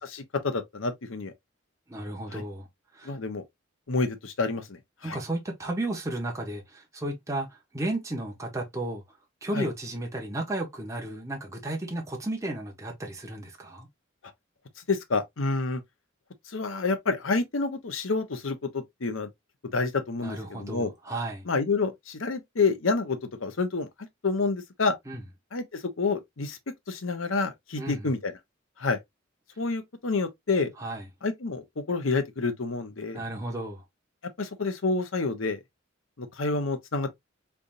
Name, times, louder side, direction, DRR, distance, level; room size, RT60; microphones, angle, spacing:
voice 1, 0.0-1.3 2.3-2.4 3.0-3.4 3.9-5.2 9.5-9.7 14.9-15.8 16.5-19.3 19.7-20.9 21.5-23.9 24.2-24.9 25.5-26.6 26.9-28.3 28.8-29.0 29.6-30.7 31.2-33.2 34.4-35.6 36.2-37.1, left 3 dB, 90° left, 0.9 m, -28 dB
voice 2, 1.9-2.7 2.9-3.2 5.0-9.0 9.4-13.9 20.2-21.5 25.1-25.2 27.7-28.1 30.8-31.1 33.1-33.8, right 1 dB, 15° right, 1.1 m, -33 dB
3.9 x 3.4 x 2.5 m
head